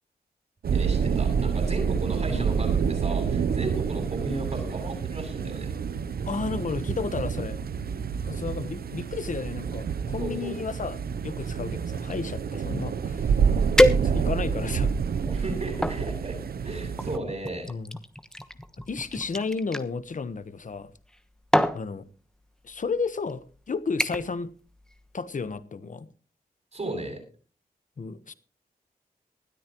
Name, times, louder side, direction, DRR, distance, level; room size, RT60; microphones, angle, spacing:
sound 1, 0.6-17.2, right 6 dB, 80° right, 0.7 m, -28 dB
voice 1, 0.7-5.7 10.2-10.5 15.3-16.4 16.6-17.7 26.7-27.2, right 2 dB, 45° right, 7.9 m, -34 dB
voice 2, 6.2-7.6 8.2-11.0 11.2-13.5 14.0-14.9 17.7-18.0 18.9-20.9 21.7-22.1 22.6-24.5 25.1-26.1 28.0-28.3, left 4 dB, 55° left, 1.2 m, -32 dB
sound 2, 13.8-14.5 15.2-16.0 17.0-19.9 21.0-21.2 21.5-21.8 22.7-22.9 23.3-23.6 24.0-24.4 24.7-25.1 25.4-25.5, equal, 5° left, 1.2 m, -26 dB
20.0 x 13.0 x 3.1 m
wide cardioid pair, 95°, 16 cm